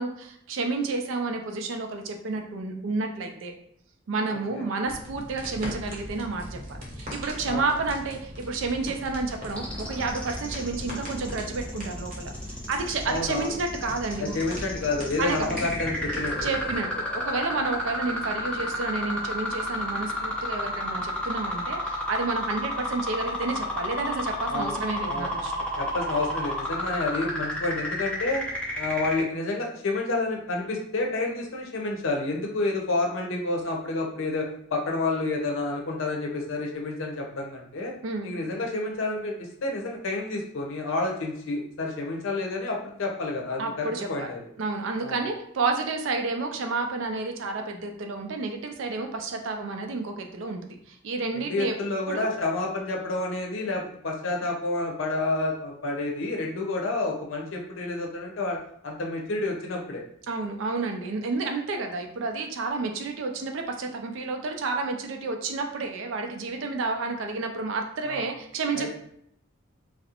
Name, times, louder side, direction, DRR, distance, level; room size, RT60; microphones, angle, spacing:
voice 1, 0.0-3.5 4.1-12.3 12.7-14.4 15.2-15.6 16.4-16.9 17.2-25.5 38.0-38.3 43.6-44.3 44.6-50.6 50.9-51.7 52.1-52.3 60.3-68.9, right 3 dB, 75° right, 4 dB, 0.4 m, -30 dB
sound 1, 4.8-16.8, equal, 40° right, 0.7 m, -39 dB
sound 2, 9.5-29.2, left 1 dB, 5° left, 0.3 m, -32 dB
voice 2, 13.1-13.5 14.2-16.5 24.5-24.8 25.1-25.3 25.8-28.5 28.8-37.9 38.2-44.4 45.0-45.2 51.3-58.6 58.8-60.0 68.0-68.2 68.7-68.9, left 2 dB, 75° left, 0 dB, 0.6 m, -29 dB
2.4 x 2.0 x 2.8 m, 0.71 s
head